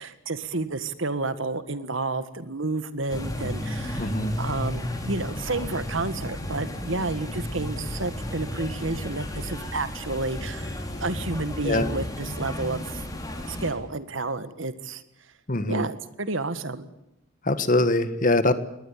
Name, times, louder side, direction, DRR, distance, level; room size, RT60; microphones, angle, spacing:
voice 1, 0.0-4.1 4.4-13.0 13.5-15.0 15.7-16.8, right 3 dB, 65° right, 13 dB, 1.7 m, -30 dB
sound 1, 3.1-13.7, left 1 dB, 15° left, 3.9 m, -33 dB
voice 2, 4.0-4.3 11.6-11.9 15.5-15.8 17.5-18.5, left 2 dB, 40° left, 13 dB, 1.5 m, -22 dB
22.0 x 18.5 x 8.6 m, 0.89 s
head